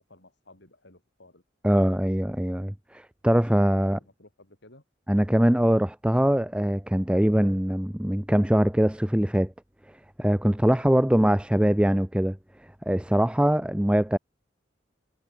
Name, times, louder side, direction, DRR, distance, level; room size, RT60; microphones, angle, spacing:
voice 1, 0.0-1.4 3.7-4.8, left 2 dB, 65° left, 7.8 m, -55 dB
voice 2, 1.6-4.0 5.1-9.5 10.2-12.4 12.9-14.2, equal, 5° right, 0.7 m, -22 dB
head